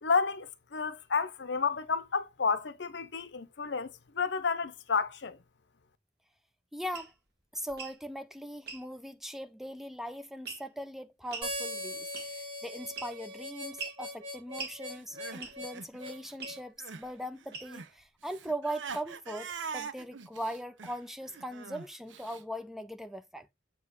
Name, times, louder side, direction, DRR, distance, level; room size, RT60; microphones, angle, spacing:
voice 1, 0.0-5.4, left 5 dB, 65° left, 0.7 m, -31 dB
voice 2, 6.7-7.1 7.5-23.5, equal, ahead, 0.4 m, -40 dB
sound 1, 6.9-7.1 7.7-8.0 8.7-8.8 10.5-10.8 11.3-11.5 12.1-12.5 13.0-13.3 13.8-14.0 14.6-14.8 15.4-15.7 16.4-16.6 17.5-17.9, right 4 dB, 60° right, 1.6 m, -41 dB
Harmonica, 11.4-16.6, left 1 dB, 25° right, 4.7 m, -40 dB
Crying sobbing, 14.9-17.1 17.4-22.4, right 5 dB, 80° right, 0.7 m, -43 dB
7.5 x 3.0 x 4.8 m
head